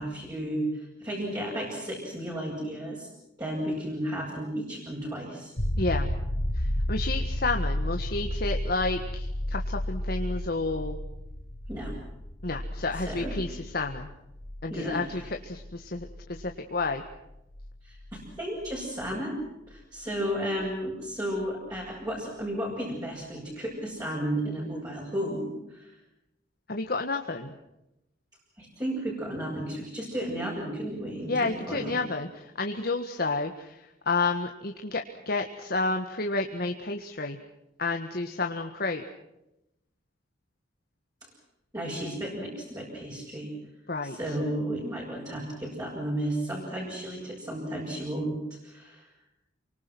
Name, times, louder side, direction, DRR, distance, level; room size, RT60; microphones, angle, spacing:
voice 1, 0.0-3.1 3.4-5.5 11.7-12.0 13.0-13.3 14.7-15.3 17.8-19.4 19.7-25.9 28.6-32.0 41.7-43.5 44.0-48.4 48.6-49.1, right 1 dB, 20° right, -6 dB, 7.8 m, -33 dB
sound 1, 5.6-19.1 21.8-21.9, left 1 dB, 85° left, 4.5 m, -33 dB
voice 2, 5.8-6.1 6.5-11.0 12.4-14.1 14.6-17.0 26.7-27.5 31.3-37.4 37.8-39.0 43.9-44.3, left 3 dB, 50° left, 4 dB, 1.6 m, -30 dB
28.5 x 24.5 x 6.1 m, 0.89 s
head